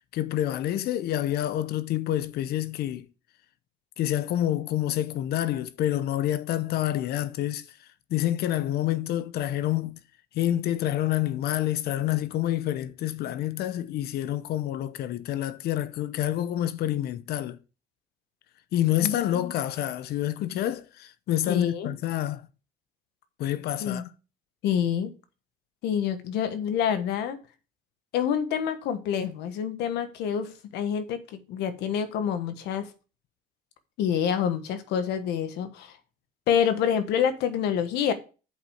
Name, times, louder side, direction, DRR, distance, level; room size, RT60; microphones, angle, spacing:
voice 1, 0.1-3.1 4.0-7.6 8.1-10.0 10.3-17.6 18.7-22.5 23.4-24.0, left 12 dB, 70° left, 0.7 m, -28 dB
voice 2, 19.0-19.5 21.5-21.9 23.8-24.0 24.6-25.1 25.8-27.4 28.1-32.9 34.0-35.9 36.5-38.1, left 8 dB, 85° left, 1.3 m, -27 dB
8.1 x 5.4 x 5.0 m
cardioid pair, 110°, 17 cm